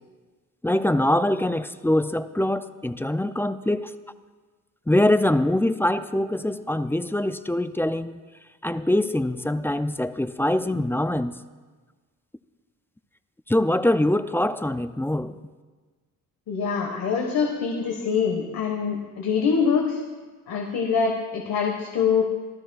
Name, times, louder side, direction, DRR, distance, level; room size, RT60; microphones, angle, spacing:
voice 1, 0.6-3.9 4.9-8.2 8.6-11.4 13.5-15.4, left 1 dB, 5° left, 0.3 m, -23 dB
voice 2, 16.5-20.0 20.5-22.3, left 6 dB, 90° left, 1.4 m, -24 dB
24.5 x 13.5 x 2.3 m
cardioid pair, 110°, 35 cm